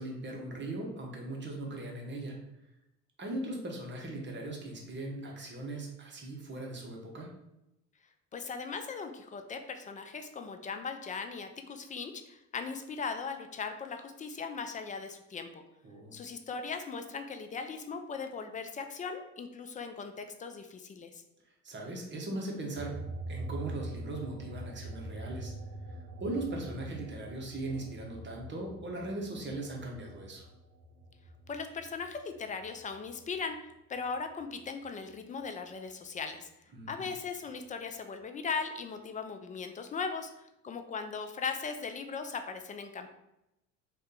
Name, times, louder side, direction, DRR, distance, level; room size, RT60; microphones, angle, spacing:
voice 1, 0.0-2.4 3.2-7.3 15.8-16.2 21.6-25.5 25.9-30.5 36.7-37.1, right 2 dB, 30° right, 0 dB, 0.9 m, -39 dB
voice 2, 8.3-15.6 16.1-21.2 31.5-36.5 36.9-43.1, left 5 dB, 25° left, 7 dB, 0.3 m, -38 dB
sound 1, 22.8-33.7 34.0-35.5, right 1 dB, 80° right, 0.6 m, -44 dB
2.6 x 2.4 x 3.7 m, 0.87 s
hypercardioid pair, 75°, 36 cm